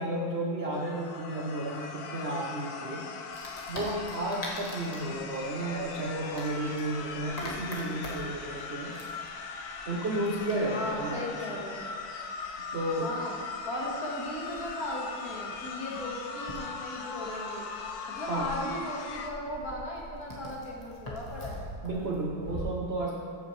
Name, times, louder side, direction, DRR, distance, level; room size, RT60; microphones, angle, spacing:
voice 1, 0.0-3.1 3.7-9.0 9.9-11.3 12.7-13.1 18.3-18.5 21.8-23.2, right 1 dB, 65° right, -1 dB, 0.6 m, -32 dB
sound 1, 0.7-19.3, left 5 dB, 65° left, 1.0 m, -40 dB
Wood, 3.3-22.6, equal, 20° left, 1.7 m, -45 dB
voice 2, 10.6-11.9 13.0-13.4 13.7-17.7 18.1-21.7, left 1 dB, 45° left, -4 dB, 2.2 m, -37 dB
15.0 x 9.0 x 3.3 m, 2.2 s
omnidirectional pair, 2.3 m